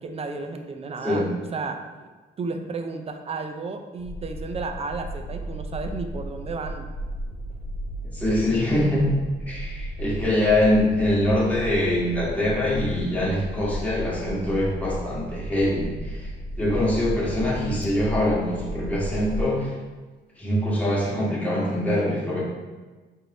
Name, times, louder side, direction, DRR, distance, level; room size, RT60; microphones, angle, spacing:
voice 1, 0.0-1.2 1.5-2.1 2.4-6.9, right 4 dB, 30° right, 6 dB, 0.4 m, -33 dB
sound 1, 4.0-19.4, equal, 40° left, 0.4 m, -34 dB
voice 2, 8.1-9.1 9.5-16.3 16.6-19.7 20.4-22.4, left 1 dB, 5° left, -5 dB, 1.1 m, -24 dB
4.5 x 2.6 x 3.3 m, 1.3 s
cardioid pair, 90°, 20 cm